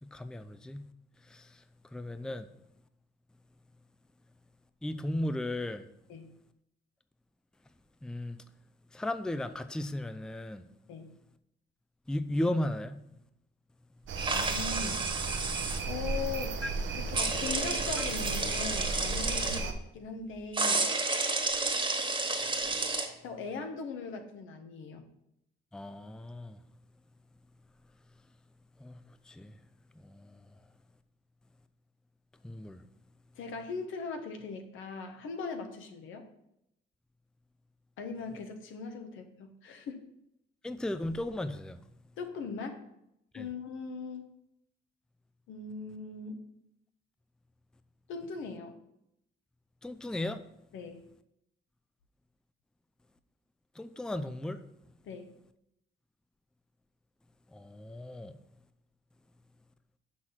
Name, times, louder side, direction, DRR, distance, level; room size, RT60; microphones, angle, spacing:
voice 1, 0.0-0.9 1.3-1.6 1.9-2.5 4.8-5.9 8.0-8.4 8.9-10.7 12.1-13.0 16.6-16.7 18.0-18.1 25.7-26.6 28.8-29.0 29.3-29.5 30.0-30.5 32.4-32.8 40.6-41.8 43.3-43.5 49.8-50.4 53.8-54.6 57.5-58.3, left 1 dB, 5° left, 0.4 m, -35 dB
sound 1, 14.1-19.7, right 4 dB, 70° right, 0.9 m, -35 dB
sound 2, 14.2-15.8 17.1-19.6 20.5-23.1, right 3 dB, 25° right, 1.4 m, -31 dB
voice 2, 14.3-15.0 15.9-16.6 16.9-20.9 23.2-25.1 33.4-36.3 38.0-40.0 42.2-42.8 43.3-44.3 45.5-46.4 48.1-48.7 50.7-51.0 55.0-55.3, left 4 dB, 80° left, 1.2 m, -40 dB
6.3 x 6.1 x 5.8 m
cardioid pair, 90°, 20 cm